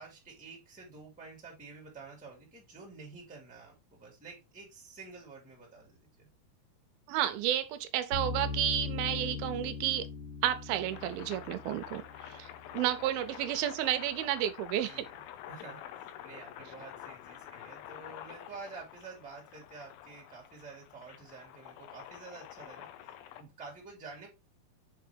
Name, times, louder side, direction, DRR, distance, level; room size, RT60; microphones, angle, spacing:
voice 1, 0.0-6.3 13.4-13.5 14.8-15.1 15.5-22.9 23.3-24.3, right 4 dB, 5° right, 1.4 m, -49 dB
voice 2, 7.1-10.0 10.4-12.5 12.7-15.1, right 12 dB, 85° right, 2.4 m, -31 dB
sound 1, 8.1-13.2, left 4 dB, 60° left, 0.9 m, -40 dB
sound 2, 10.9-23.4, left 11 dB, 80° left, 2.4 m, -48 dB
6.3 x 4.6 x 3.3 m
omnidirectional pair, 4.4 m